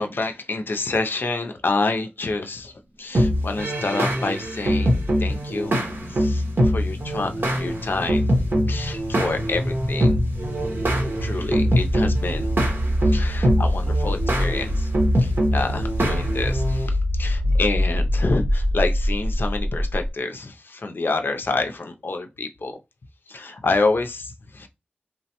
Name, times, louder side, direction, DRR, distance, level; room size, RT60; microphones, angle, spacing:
voice 1, 0.0-2.7 3.0-8.3 8.7-10.2 11.2-12.5 13.0-14.9 15.2-22.8 23.3-24.7, left 3 dB, 65° left, 0.4 m, -28 dB
sound 1, 3.1-16.9, equal, 70° right, 0.9 m, -23 dB
sound 2, 4.2-20.1, equal, 45° right, 0.6 m, -26 dB
3.1 x 2.1 x 2.8 m
wide cardioid pair, 65°, 4 cm